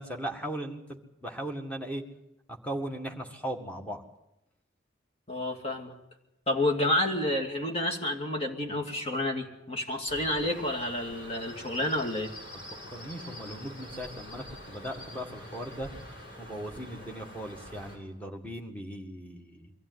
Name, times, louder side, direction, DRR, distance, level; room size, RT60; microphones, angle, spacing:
voice 1, 0.0-2.0 2.5-4.0 12.9-15.9 16.4-19.7, right 1 dB, 5° left, 2 dB, 1.9 m, -38 dB
voice 2, 5.3-5.9 6.5-12.3, left 1 dB, 30° left, 3 dB, 2.5 m, -29 dB
sound 1, 10.1-18.0, equal, 65° left, 7.5 m, -45 dB
23.5 x 14.5 x 9.6 m, 0.90 s
head